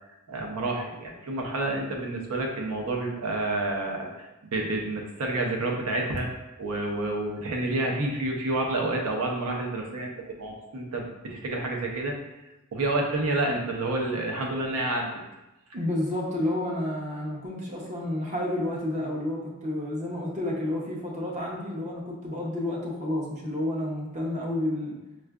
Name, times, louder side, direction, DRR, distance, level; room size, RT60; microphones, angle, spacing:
voice 1, 0.3-6.3 6.6-12.2 12.7-15.1, right 2 dB, 85° right, 0 dB, 0.6 m, -29 dB
voice 2, 15.7-25.0, left 1 dB, 30° right, -2 dB, 0.6 m, -30 dB
4.5 x 2.4 x 2.3 m, 0.99 s
head